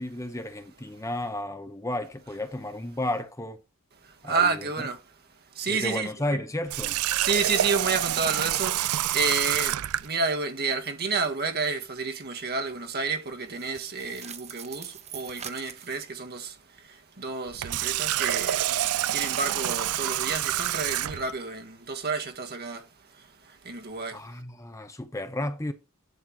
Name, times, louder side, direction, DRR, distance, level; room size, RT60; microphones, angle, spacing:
voice 1, 0.0-3.6 4.2-4.6 5.7-7.0 24.1-25.7, left 1 dB, 15° left, 0.9 m, -33 dB
voice 2, 4.0-5.0 5.4-6.4 7.2-24.3, right 4 dB, 45° right, 1.6 m, -30 dB
Water tap faucet, 6.7-10.1 17.5-21.3, right 13 dB, 75° right, 0.4 m, -27 dB
sound 1, 13.4-16.1 17.8-18.9, right 8 dB, 30° right, 0.8 m, -44 dB
11.0 x 4.4 x 6.0 m
head